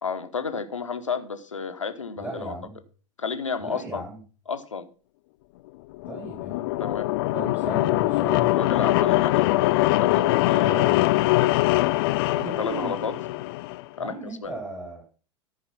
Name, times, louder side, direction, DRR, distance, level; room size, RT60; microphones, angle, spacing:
voice 1, 0.0-2.5 3.2-4.0 4.5-4.9 6.8-7.1 8.5-10.9 11.4-11.6 12.3-13.2 14.0-14.5, left 5 dB, 85° left, 8 dB, 1.2 m, -31 dB
voice 2, 2.2-2.8 3.6-4.2 6.1-6.7 7.3-8.6 10.6-11.0 12.3-13.0 14.0-15.0, right 2 dB, 10° right, -2 dB, 3.7 m, -36 dB
sound 1, 5.9-13.8, left 19 dB, 50° left, 0.4 m, -22 dB
14.0 x 4.8 x 5.6 m, 0.37 s
figure-of-eight pair, 85°, 16 cm